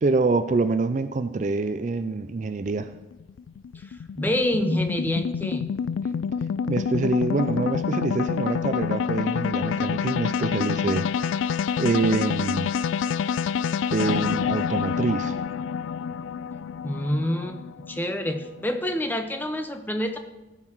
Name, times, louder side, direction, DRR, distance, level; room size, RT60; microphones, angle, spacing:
voice 1, 0.0-2.9 6.7-11.1 11.8-12.7 13.9-15.4, right 3 dB, 40° right, 10 dB, 0.4 m, -25 dB
sound 1, 2.7-19.0, left 7 dB, 90° left, 0.3 m, -28 dB
voice 2, 3.7-5.7 16.8-17.6 17.9-20.2, left 1 dB, 10° left, 6 dB, 0.7 m, -27 dB
15.5 x 5.7 x 4.6 m, 1.1 s
head